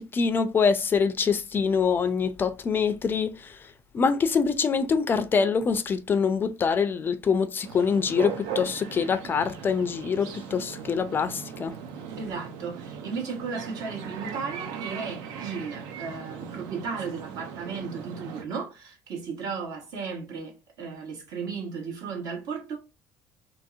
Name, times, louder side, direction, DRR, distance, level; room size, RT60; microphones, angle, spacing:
voice 1, 0.0-11.7, left 6 dB, 30° left, 0.3 m, -25 dB
sound 1, 7.6-18.4, right 7 dB, 80° right, 0.5 m, -38 dB
voice 2, 12.2-22.8, right 5 dB, 60° right, 1.1 m, -35 dB
2.9 x 2.7 x 2.4 m
cardioid pair, 115°, 7 cm